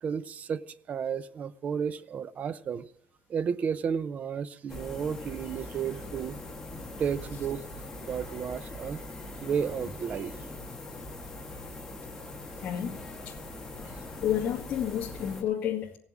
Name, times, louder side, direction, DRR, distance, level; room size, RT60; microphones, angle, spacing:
voice 1, 0.0-2.8 3.3-6.4 7.0-9.0 9.4-10.3, right 7 dB, 35° right, 0.5 m, -32 dB
sound 1, 4.7-15.4, left 2 dB, 10° left, 1.9 m, -41 dB
voice 2, 12.6-13.0 14.2-16.0, left 10 dB, 40° left, 2.2 m, -30 dB
17.0 x 7.1 x 9.6 m
cardioid pair, 160°, 4 cm